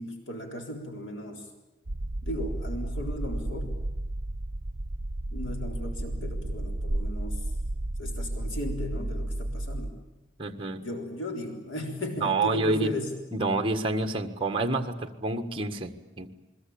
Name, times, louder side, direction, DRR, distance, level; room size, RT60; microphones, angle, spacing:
voice 1, 0.0-1.5 2.2-3.8 5.3-7.4 8.0-10.0 10.8-13.1, equal, 75° left, 3 dB, 3.8 m, -36 dB
sound 1, 1.9-9.9, right 1 dB, 60° right, 1.1 m, -32 dB
voice 2, 10.4-10.8 12.2-12.9 13.3-16.3, right 2 dB, 25° right, 5 dB, 1.6 m, -28 dB
28.5 x 21.5 x 8.7 m, 0.99 s
head